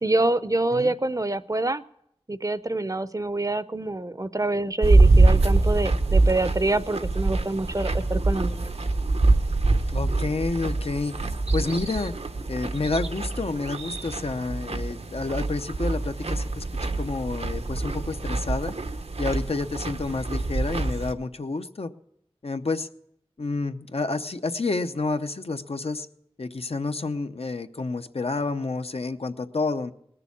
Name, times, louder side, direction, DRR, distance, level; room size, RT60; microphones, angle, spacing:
voice 1, 0.0-1.8 2.3-8.7, right 2 dB, 35° right, 14 dB, 0.5 m, -26 dB
sound 1, 4.8-21.1, right 2 dB, 90° right, 0.9 m, -24 dB
voice 2, 9.9-11.2 11.5-12.1 12.5-18.7 19.2-21.9 22.4-22.9 23.4-26.1 26.4-29.9, left 3 dB, 75° left, 8 dB, 0.8 m, -29 dB
19.5 x 6.9 x 8.4 m, 0.76 s
wide cardioid pair, 55°, 10 cm